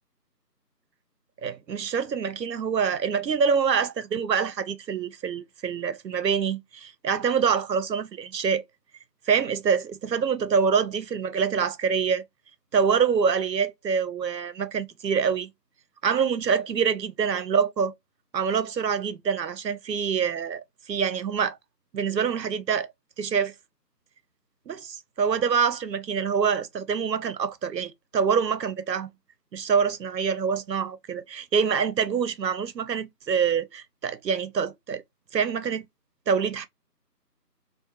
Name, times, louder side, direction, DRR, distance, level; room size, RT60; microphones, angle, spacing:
voice 1, 1.4-8.6 9.3-12.2 12.7-15.5 16.0-17.9 18.3-21.6 21.9-22.9 23.2-23.5 24.7-29.1 29.5-35.0 35.3-35.9 36.3-36.7, right 6 dB, 90° right, 0.6 m, -25 dB
2.4 x 2.2 x 2.6 m
figure-of-eight pair, 170°, 49 cm